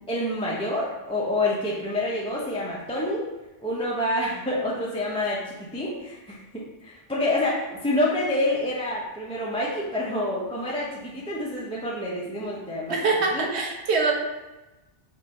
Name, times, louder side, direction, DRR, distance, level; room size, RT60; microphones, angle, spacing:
voice 1, 0.1-3.2 3.6-13.0 13.3-13.5, left 1 dB, 5° left, -5 dB, 0.5 m, -27 dB
voice 2, 12.9-14.1, right 4 dB, 85° right, 0 dB, 1.1 m, -24 dB
4.5 x 2.6 x 4.1 m, 1.0 s
omnidirectional pair, 1.1 m